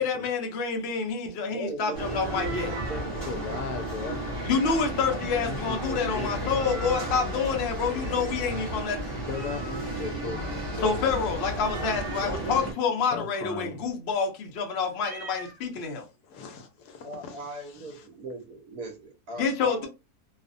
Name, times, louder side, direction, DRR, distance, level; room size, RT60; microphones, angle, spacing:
voice 1, 0.0-2.7 4.4-9.0 10.8-16.0 19.4-19.9, left 5 dB, 60° left, 0.7 m, -28 dB
voice 2, 1.4-3.6 4.0-4.1 12.2-12.7 17.0-19.9, right 2 dB, 70° right, 1.3 m, -39 dB
sound 1, 1.9-12.7, right 1 dB, 20° right, 0.9 m, -33 dB
Meow, 2.3-3.0 6.5-7.3 9.3-10.1 11.6-12.3 14.9-15.6, right 4 dB, 40° right, 1.2 m, -42 dB
voice 3, 3.0-4.3 4.6-4.8 5.1-6.6 9.1-11.6 13.1-13.8 15.8-18.0, left 4 dB, 85° left, 1.2 m, -38 dB
3.1 x 2.1 x 2.5 m
omnidirectional pair, 1.6 m